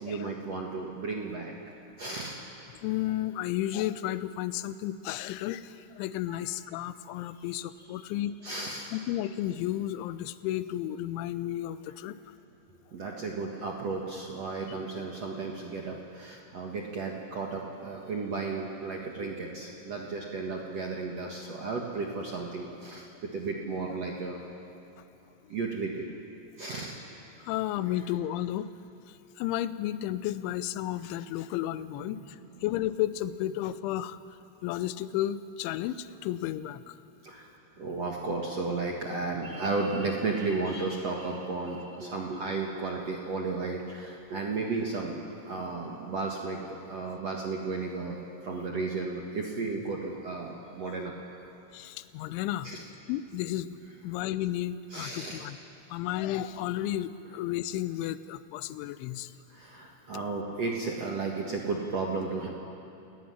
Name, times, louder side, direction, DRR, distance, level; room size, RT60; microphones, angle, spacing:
voice 1, 0.0-1.5 2.0-2.4 6.3-6.4 8.4-8.9 12.9-24.4 25.5-26.1 26.6-27.0 37.2-37.5 37.8-45.2 45.4-51.1 52.6-52.8 54.9-55.4 59.5-62.5, right 3 dB, 60° right, -1 dB, 1.7 m, -34 dB
voice 2, 2.8-8.4 8.9-12.2 27.4-28.7 29.1-34.2 34.6-37.0 51.7-52.7 53.1-53.8 54.0-55.6 55.9-59.3, left 13 dB, 80° left, 13 dB, 3.0 m, -33 dB
29.0 x 17.5 x 9.7 m, 2.8 s
omnidirectional pair, 5.7 m